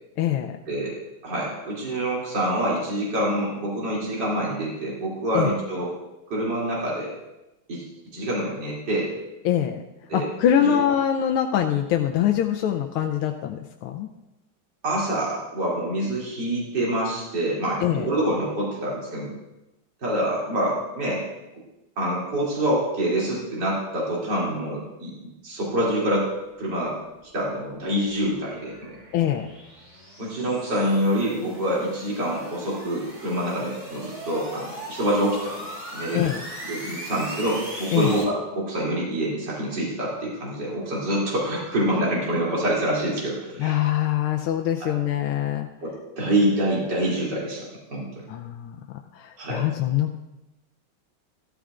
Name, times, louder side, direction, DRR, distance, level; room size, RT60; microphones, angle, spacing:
voice 1, 0.2-0.6 5.3-5.5 9.4-9.8 10.1-14.1 17.8-18.1 29.1-29.5 36.1-36.4 37.9-38.1 43.6-45.7 48.3-48.8 49.2-50.2, left 10 dB, 85° left, 2 dB, 1.5 m, -23 dB
voice 2, 1.2-5.9 6.3-7.1 7.7-7.8 8.1-9.1 10.1-10.3 10.6-10.7 14.8-19.3 20.0-21.2 22.0-25.1 25.4-26.3 26.6-27.0 27.3-28.9 30.2-36.2 36.6-43.7 44.8-45.0 45.8-47.6 47.9-48.3 49.4-49.6, right 1 dB, 55° right, -6 dB, 3.5 m, -26 dB
sound 1, 27.0-38.2, equal, 20° right, 2.5 m, -39 dB
14.0 x 13.5 x 2.5 m, 0.96 s
omnidirectional pair, 2.3 m